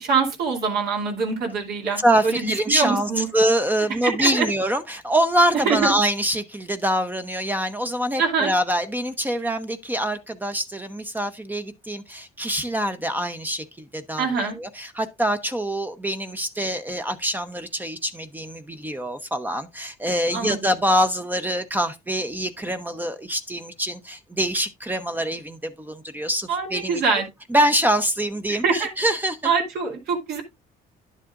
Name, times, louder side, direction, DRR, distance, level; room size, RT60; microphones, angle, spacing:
voice 1, 0.0-3.3 4.0-4.5 5.7-5.9 8.2-8.5 14.2-14.5 20.3-20.6 26.5-27.2 28.5-28.9 29.4-30.4, right 5 dB, 70° right, 2.7 m, -24 dB
voice 2, 2.0-27.0 27.5-29.5, right 1 dB, 10° right, 0.8 m, -24 dB
10.5 x 7.4 x 2.5 m
cardioid pair, 110°, 17 cm